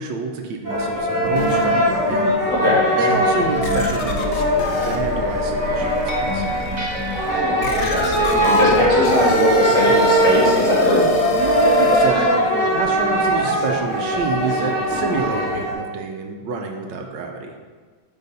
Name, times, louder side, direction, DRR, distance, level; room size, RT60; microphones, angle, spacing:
voice 1, 0.0-2.3 2.9-6.4 9.1-9.2 11.3-17.5, right 4 dB, 75° right, 3 dB, 1.3 m, -28 dB
sound 1, 0.6-15.7, equal, 10° left, 1.4 m, -21 dB
sound 2, 1.2-2.4 3.0-3.1 3.6-12.1, left 4 dB, 85° left, 0.6 m, -26 dB
voice 2, 2.5-2.9 7.1-11.0, left 1 dB, 45° left, -7 dB, 2.3 m, -20 dB
sound 3, 2.5-8.0, equal, 40° right, 1.4 m, -29 dB
6.4 x 5.3 x 4.0 m, 1.4 s
omnidirectional pair, 2.0 m